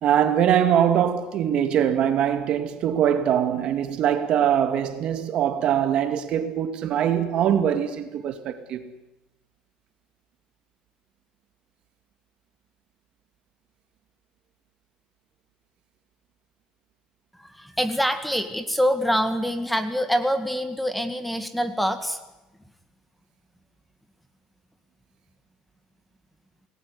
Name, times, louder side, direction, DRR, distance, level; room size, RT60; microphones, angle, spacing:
voice 1, 0.0-8.9, right 9 dB, 50° right, 2.4 m, -22 dB
voice 2, 17.3-22.2, equal, ahead, 1.9 m, -25 dB
27.5 x 19.5 x 9.8 m
cardioid pair, 150°, 2 cm